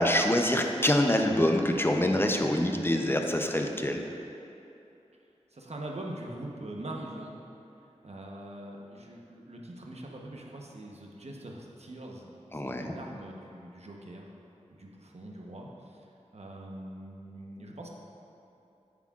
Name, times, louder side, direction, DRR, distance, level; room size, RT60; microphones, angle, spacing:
voice 1, 0.0-4.0 12.5-12.9, left 1 dB, 20° left, 3 dB, 0.6 m, -25 dB
voice 2, 5.5-7.4 8.0-14.3 14.8-17.9, right 1 dB, 60° right, -1 dB, 1.0 m, -43 dB
9.7 x 8.4 x 2.5 m, 2.8 s
wide cardioid pair, 55°, 12 cm